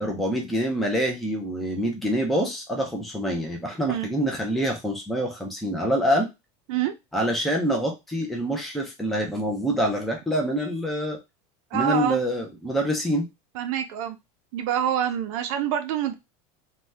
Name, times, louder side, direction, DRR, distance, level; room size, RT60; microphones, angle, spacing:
voice 1, 0.0-6.3 7.1-11.2 11.7-13.3, equal, ahead, 0 dB, 0.5 m, -26 dB
voice 2, 11.7-12.2 13.6-14.2 14.5-16.1, right 10 dB, 70° right, 7 dB, 0.5 m, -26 dB
2.7 x 2.2 x 3.2 m, 0.23 s
cardioid pair, 165°, 17 cm